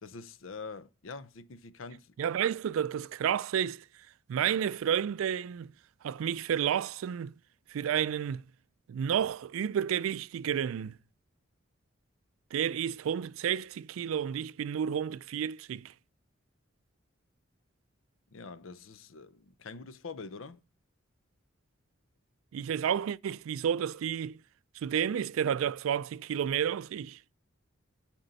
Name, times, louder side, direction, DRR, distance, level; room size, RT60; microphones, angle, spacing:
voice 1, 0.0-2.0 18.3-20.6, left 4 dB, 80° left, 0.6 m, -45 dB
voice 2, 2.2-3.8 4.3-5.7 6.0-7.3 7.7-8.4 8.9-10.9 12.5-15.9 22.5-24.4 24.8-27.2, right 8 dB, 85° right, 0.3 m, -31 dB
8.9 x 4.4 x 4.0 m
head